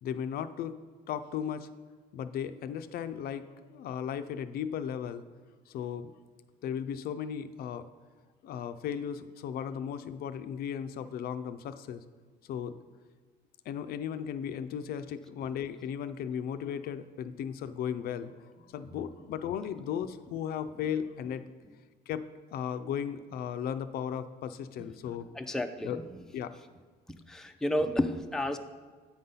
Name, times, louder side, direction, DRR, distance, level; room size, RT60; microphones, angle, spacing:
voice 1, 0.0-0.8 1.1-1.7 2.1-5.2 5.7-6.1 6.6-7.9 8.4-12.0 12.5-12.8 13.7-21.4 22.1-25.3 25.8-26.0 26.3-26.5, left 8 dB, 65° left, 11 dB, 0.4 m, -36 dB
voice 2, 25.3-26.0 27.3-28.6, left 1 dB, 5° left, 6 dB, 0.4 m, -31 dB
8.6 x 3.9 x 5.5 m, 1.5 s
cardioid pair, 110°, 17 cm